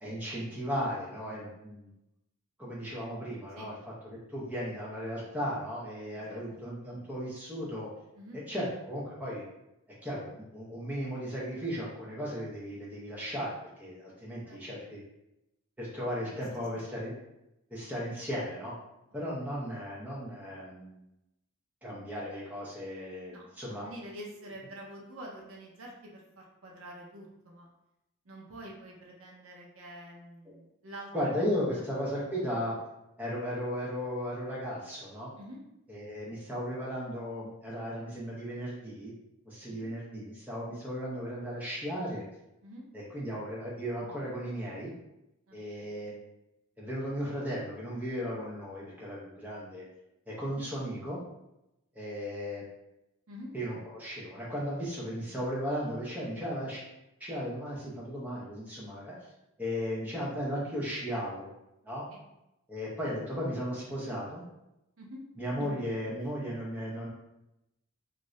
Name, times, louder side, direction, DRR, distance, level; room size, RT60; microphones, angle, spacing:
voice 1, 0.0-1.9 2.6-3.7 4.0-7.9 8.5-9.4 10.0-15.0 15.8-17.1 17.7-18.7 19.1-21.0 21.8-23.9 31.1-32.7 33.2-35.3 35.9-39.1 39.5-42.3 42.9-44.9 45.5-46.2 46.8-49.9 50.3-51.2 51.9-52.6 53.5-56.8 57.2-59.1 59.6-61.5 61.9-62.0 62.7-64.4 65.4-67.1, equal, 5° right, -6 dB, 0.7 m, -36 dB
voice 2, 14.4-14.9 16.1-16.8 23.3-27.7 28.2-31.3 31.7-31.8 32.2-32.3 35.4-35.6 39.6-39.9 42.6-42.9 45.5-45.9 53.3-53.5 62.1-62.2 65.0-65.2 65.6-65.7, right 1 dB, 65° right, -1 dB, 0.6 m, -47 dB
2.6 x 2.5 x 3.1 m, 0.89 s
head